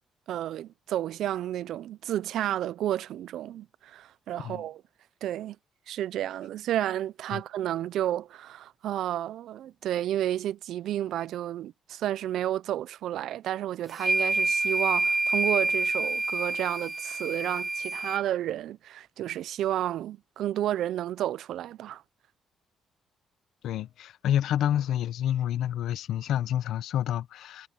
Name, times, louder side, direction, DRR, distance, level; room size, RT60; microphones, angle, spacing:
voice 1, 0.3-4.8 5.2-5.6 5.9-22.0, right 12 dB, 80° right, 0.5 m, -31 dB
sound 1, 13.9-18.2, right 2 dB, 20° right, 0.5 m, -27 dB
voice 2, 23.6-27.7, left 11 dB, 80° left, 1.0 m, -28 dB
cardioid pair, 90°, 0 cm